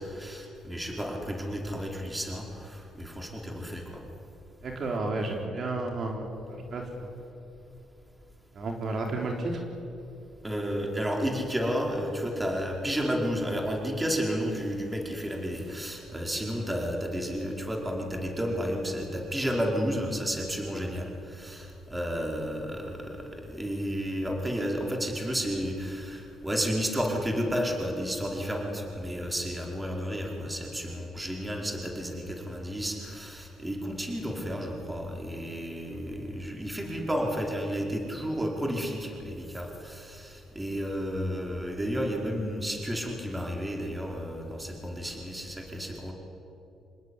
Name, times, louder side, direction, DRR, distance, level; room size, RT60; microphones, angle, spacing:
voice 1, 0.0-4.0 10.4-46.1, equal, 10° right, 0 dB, 4.9 m, -32 dB
voice 2, 4.6-7.1 8.5-9.6, right 2 dB, 55° right, 1 dB, 4.0 m, -32 dB
26.5 x 19.5 x 9.9 m, 2.7 s
cardioid pair, 90°, 0 cm